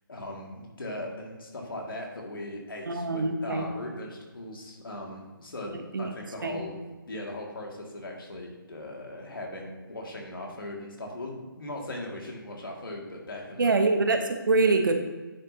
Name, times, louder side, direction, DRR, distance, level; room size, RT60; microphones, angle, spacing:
voice 1, 0.1-6.7 7.1-13.8, left 1 dB, 70° left, 0 dB, 2.2 m, -39 dB
voice 2, 2.9-3.7 5.9-6.1 6.4-6.6 13.6-15.0, right 3 dB, 65° right, 6 dB, 1.0 m, -24 dB
9.6 x 6.7 x 2.8 m, 1.3 s
figure-of-eight pair, 150°, 12 cm